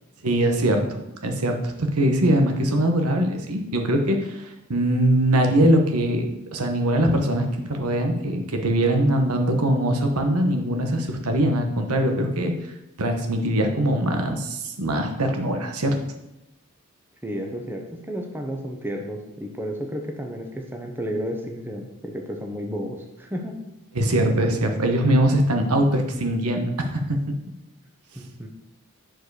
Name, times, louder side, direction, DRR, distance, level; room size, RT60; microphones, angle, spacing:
voice 1, 0.2-0.8 1.2-6.2 6.5-12.5 13.0-16.0 23.9-27.0, right 1 dB, 90° right, 4 dB, 1.2 m, -22 dB
voice 2, 17.2-23.6 28.2-28.5, equal, 10° right, 2 dB, 0.9 m, -32 dB
9.2 x 4.7 x 4.8 m, 0.90 s
head